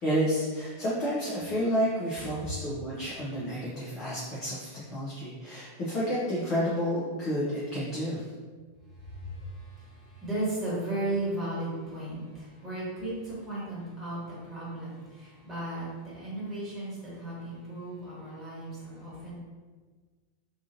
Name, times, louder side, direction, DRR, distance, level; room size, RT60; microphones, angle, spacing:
voice 1, 0.0-8.2, equal, 35° left, -7 dB, 0.6 m, -30 dB
voice 2, 9.0-19.4, right 1 dB, 25° right, -8 dB, 1.3 m, -35 dB
2.8 x 2.4 x 2.6 m, 1.4 s
figure-of-eight pair, 90°, 0 cm